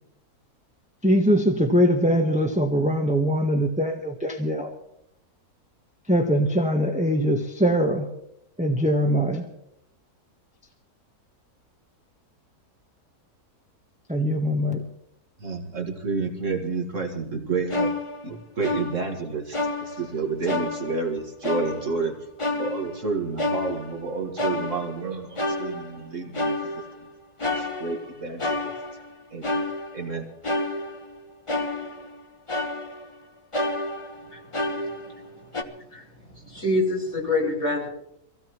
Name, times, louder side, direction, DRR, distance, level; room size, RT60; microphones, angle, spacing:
voice 1, 1.0-4.7 6.1-8.1 8.6-9.4 14.1-14.9, equal, 5° right, 2 dB, 1.0 m, -22 dB
voice 2, 15.4-18.0 18.2-22.1 22.6-26.8 27.6-28.7 29.3-29.6 29.9-30.3, right 4 dB, 55° right, 2 dB, 2.1 m, -30 dB
sound 1, 17.7-19.2 19.5-20.2 20.5-21.1 21.4-22.0 22.4-24.1 24.4-25.1 25.4-26.1 26.3-27.0 27.4-29.1 29.4-30.1 30.4-31.2 31.5-32.2 32.5-33.2 33.5-35.3 35.5-35.6, left 2 dB, 20° left, 1.1 m, -30 dB
voice 3, 36.4-37.9, left 2 dB, 45° left, -3 dB, 5.9 m, -25 dB
25.0 x 16.5 x 3.1 m, 0.77 s
omnidirectional pair, 1.6 m